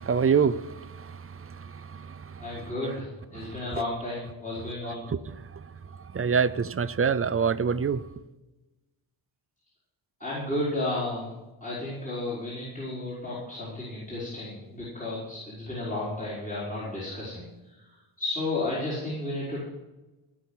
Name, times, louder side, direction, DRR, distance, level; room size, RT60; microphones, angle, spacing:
voice 1, 0.1-0.6 6.1-8.0, right 6 dB, 30° right, 0.5 m, -23 dB
voice 2, 2.4-5.0 10.2-11.3 11.6-17.4 18.2-19.6, left 2 dB, 15° left, 4.8 m, -32 dB
17.0 x 6.2 x 8.5 m
wide cardioid pair, 135°, 48 cm